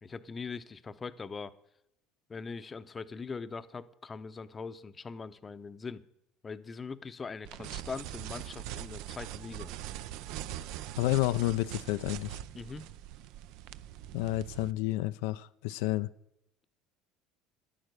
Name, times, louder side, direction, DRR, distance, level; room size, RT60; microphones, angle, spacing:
voice 1, 0.0-1.5 2.3-6.0 6.4-9.7 12.6-12.9, left 5 dB, 20° left, 13 dB, 0.6 m, -41 dB
sound 1, 7.4-14.7, right 12 dB, 70° right, 0.5 m, -42 dB
voice 2, 11.0-12.4 14.1-16.1, left 17 dB, 85° left, 12 dB, 0.4 m, -30 dB
11.0 x 9.0 x 6.7 m, 0.81 s
cardioid pair, 130°, 0 cm